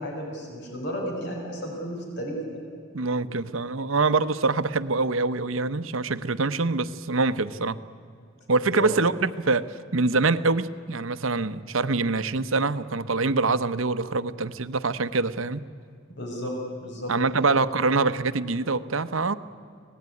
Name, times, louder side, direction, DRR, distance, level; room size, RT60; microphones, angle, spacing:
voice 1, 0.0-2.4 8.8-8.9 16.1-16.5 16.8-17.1 17.4-17.5, equal, 60° left, 1 dB, 6.0 m, -33 dB
voice 2, 2.9-7.8 8.5-15.6 17.1-19.3, right 3 dB, 75° right, 12 dB, 0.9 m, -25 dB
25.0 x 18.5 x 9.8 m, 2.4 s
head